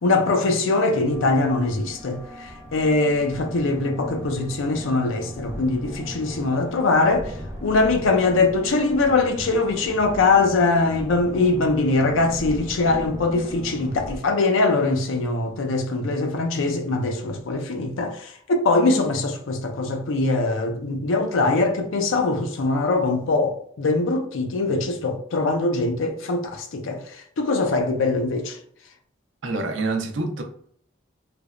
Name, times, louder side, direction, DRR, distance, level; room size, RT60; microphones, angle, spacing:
voice 1, 0.0-7.3 7.6-28.6, left 3 dB, 80° left, 0.5 m, -22 dB
sound 1, 1.1-14.2, equal, 15° right, 0.5 m, -38 dB
voice 2, 29.4-30.4, right 3 dB, 70° right, 0.5 m, -26 dB
3.2 x 2.0 x 2.4 m
head